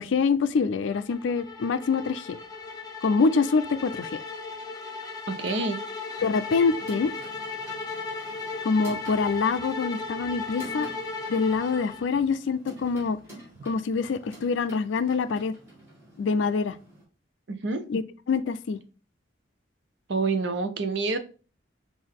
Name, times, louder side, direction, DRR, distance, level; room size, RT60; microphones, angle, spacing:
voice 1, 0.0-2.4 3.0-4.2 6.2-7.1 8.6-10.9 11.3-13.2 13.6-15.5 16.2-16.8 17.9-18.0 18.3-18.8, left 4 dB, 75° left, 0.4 m, -25 dB
sound 1, 0.9-12.3, left 4 dB, 20° left, 0.6 m, -36 dB
voice 2, 5.3-5.8 17.5-17.8 20.1-21.2, right 3 dB, 70° right, 0.7 m, -27 dB
sound 2, 6.1-17.0, right 1 dB, 15° right, 2.1 m, -49 dB
5.5 x 2.6 x 3.5 m
head